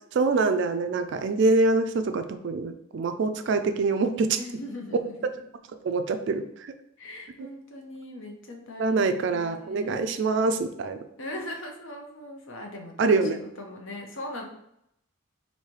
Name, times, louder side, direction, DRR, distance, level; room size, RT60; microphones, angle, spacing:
voice 1, 0.1-4.4 5.8-6.7 8.8-11.0 13.0-13.4, right 3 dB, 55° right, 9 dB, 0.3 m, -25 dB
voice 2, 4.4-5.1 7.0-10.1 11.2-14.4, left 1 dB, 65° left, 2 dB, 0.8 m, -40 dB
3.2 x 2.7 x 4.5 m, 0.77 s
head